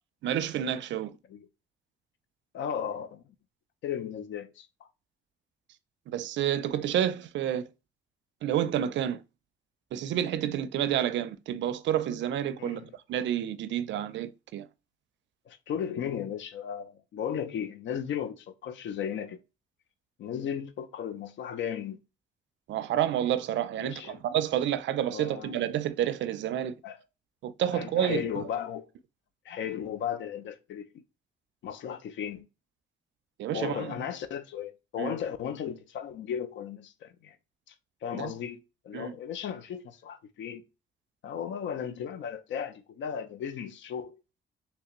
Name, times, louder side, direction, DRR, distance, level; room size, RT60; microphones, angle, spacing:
voice 1, 0.2-1.1 6.1-7.7 8.4-9.2 9.9-12.8 13.1-14.7 22.7-26.8 27.4-28.5 33.4-33.9 35.0-35.1 38.1-38.3 38.9-39.1, right 10 dB, 70° right, 0.4 m, -29 dB
voice 2, 2.5-3.2 3.8-4.7 12.6-12.9 15.5-19.4 20.2-22.0 23.8-24.2 25.1-25.6 26.8-27.0 27.7-28.9 29.4-30.9 31.6-32.5 33.5-37.4 38.0-40.6 41.2-44.2, left 8 dB, 70° left, 0.5 m, -35 dB
3.3 x 3.0 x 3.0 m
cardioid pair, 90°, 20 cm